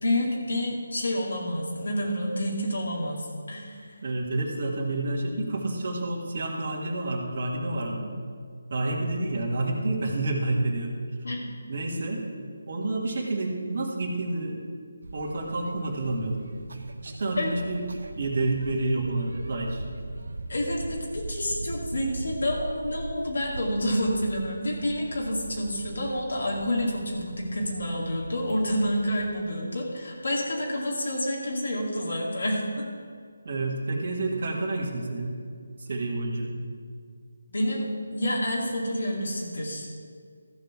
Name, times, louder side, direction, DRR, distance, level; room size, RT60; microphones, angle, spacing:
voice 1, 0.0-3.9 11.2-11.5 17.4-17.6 20.5-32.9 37.5-40.0, equal, 70° left, -2 dB, 2.2 m, -29 dB
voice 2, 4.0-8.1 8.7-11.0 11.7-12.2 12.7-14.6 15.1-16.4 17.0-17.8 18.1-19.8 33.4-35.3 35.8-36.5, right 2 dB, 50° right, -2 dB, 2.0 m, -29 dB
sound 1, 15.0-29.4, right 2 dB, 70° right, 0.9 m, -40 dB
14.0 x 5.3 x 6.0 m, 2.1 s
figure-of-eight pair, 155°, 0 cm